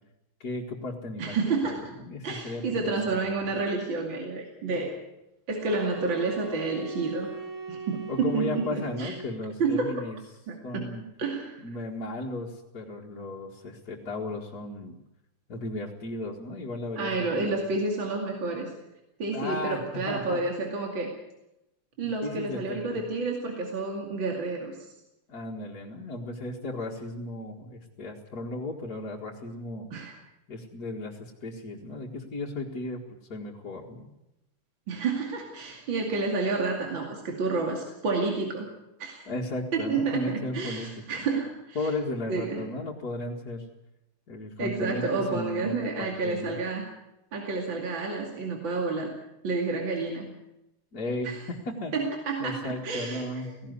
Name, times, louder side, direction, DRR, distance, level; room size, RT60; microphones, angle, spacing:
voice 1, 0.4-1.4 1.6-3.4 8.1-10.2 10.6-11.0 11.6-15.0 15.5-17.6 19.3-20.4 22.2-23.0 25.3-29.9 30.5-33.0 33.3-34.1 39.3-41.2 41.8-43.7 44.3-46.5 50.9-52.0 52.4-53.7, left 2 dB, 45° left, -3 dB, 2.4 m, -35 dB
voice 2, 1.2-1.9 2.2-4.9 5.5-7.3 7.7-9.1 9.6-10.0 10.5-10.9 11.2-11.6 17.0-18.7 19.2-21.1 22.0-24.9 29.9-30.1 34.9-38.7 39.0-39.3 39.7-41.9 42.3-42.7 44.6-46.9 47.3-49.1 49.4-50.3 51.2-51.4 51.9-53.5, right 3 dB, 60° right, 1 dB, 3.2 m, -30 dB
sound 1, 5.6-9.5, right 3 dB, 35° right, 1.8 m, -39 dB
17.5 x 16.5 x 9.6 m, 0.89 s
omnidirectional pair, 2.4 m